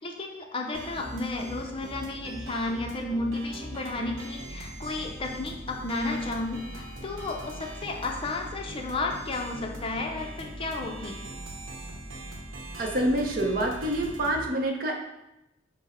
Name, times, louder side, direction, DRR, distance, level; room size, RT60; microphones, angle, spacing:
voice 1, 0.0-11.2, left 2 dB, 30° left, 2 dB, 0.5 m, -32 dB
sound 1, 0.7-14.5, right 1 dB, 85° right, 0.8 m, -41 dB
voice 2, 12.8-15.0, right 1 dB, 50° right, 2 dB, 0.6 m, -27 dB
6.1 x 2.0 x 4.2 m, 0.90 s
head